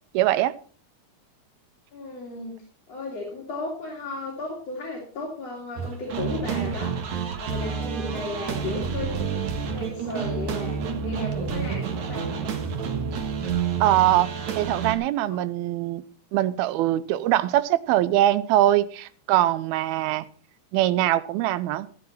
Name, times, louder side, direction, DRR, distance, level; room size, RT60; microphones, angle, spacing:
voice 1, 0.1-0.5 13.8-16.0 16.3-20.3 20.7-21.9, right 14 dB, 80° right, 15 dB, 2.5 m, -22 dB
voice 2, 1.9-2.6 2.9-12.3 15.3-15.4, left 2 dB, 45° left, -3 dB, 3.7 m, -35 dB
sound 1, 5.8-15.0, right 6 dB, 55° right, 2.5 m, -29 dB
13.0 x 12.0 x 4.2 m, 0.42 s
omnidirectional pair, 4.4 m